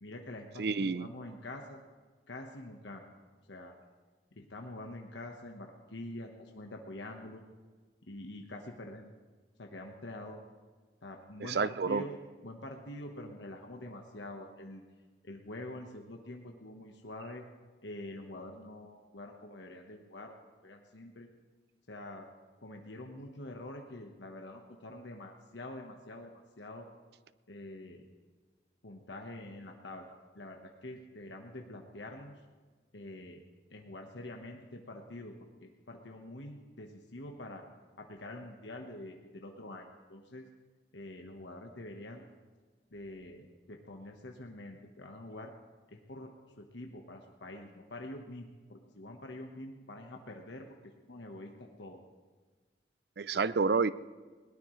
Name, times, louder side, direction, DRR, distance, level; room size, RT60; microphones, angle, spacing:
voice 1, 0.0-1.8 2.3-3.0 3.5-3.7 4.3-7.4 8.1-9.1 9.6-10.4 11.0-12.2 12.4-14.8 15.2-17.4 17.8-20.3 20.6-21.3 21.9-22.3 22.6-26.9 27.5-28.1 28.8-32.4 32.9-33.4 33.7-37.7 38.0-40.5 40.9-42.3 42.9-45.5 45.9-46.3 46.6-52.0, left 1 dB, 85° left, 2 dB, 1.3 m, -46 dB
voice 2, 0.6-1.1 11.5-12.0 53.2-53.9, right 4 dB, 65° right, 17 dB, 0.5 m, -29 dB
21.0 x 19.0 x 3.2 m, 1.4 s
head